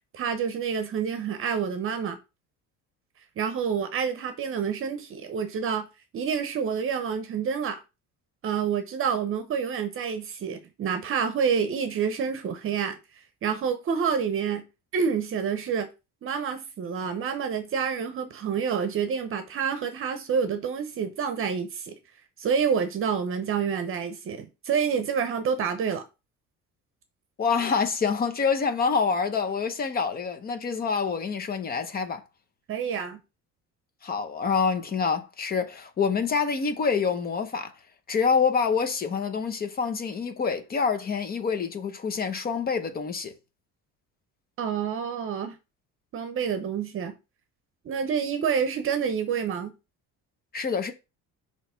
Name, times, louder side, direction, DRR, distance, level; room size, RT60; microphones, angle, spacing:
voice 1, 0.1-2.2 3.4-5.9 6.1-7.8 8.4-13.0 13.4-14.6 14.9-15.9 16.2-21.9 22.4-26.0 32.7-33.2 44.6-45.5 46.1-47.1 47.8-49.7, right 7 dB, 45° right, 0.8 m, -28 dB
voice 2, 27.4-32.2 34.0-37.7 38.1-43.3 50.5-50.9, left 5 dB, 30° left, 0.8 m, -26 dB
6.3 x 3.1 x 5.6 m
cardioid pair, 165°, 31 cm